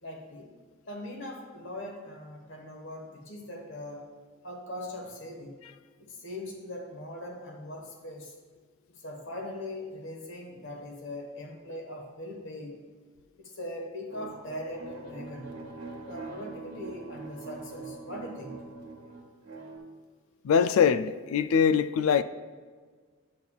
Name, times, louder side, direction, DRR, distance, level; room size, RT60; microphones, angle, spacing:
voice 1, 0.0-0.5 0.9-4.1 4.4-5.6 6.0-8.3 9.0-12.8 13.4-15.6 16.0-18.6, left 1 dB, 60° left, 1.3 m, -40 dB
sound 1, 14.1-19.8, right 3 dB, 80° right, 1.5 m, -43 dB
voice 2, 20.4-22.2, left 7 dB, 75° left, 0.3 m, -23 dB
9.4 x 7.0 x 2.4 m
head